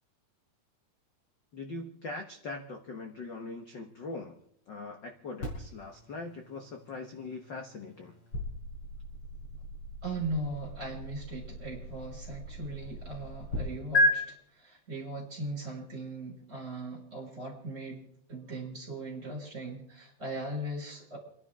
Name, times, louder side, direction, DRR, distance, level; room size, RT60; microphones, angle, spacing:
voice 1, 1.5-4.3 4.7-8.1, left 3 dB, 75° left, 4 dB, 1.0 m, -41 dB
sound 1, 5.4-13.6 13.9-14.1, equal, 35° left, 6.1 m, -34 dB
voice 2, 10.0-18.0 18.3-21.2, right 2 dB, 20° right, -1 dB, 6.3 m, -39 dB
29.5 x 11.5 x 3.7 m, 0.67 s
omnidirectional pair, 4.1 m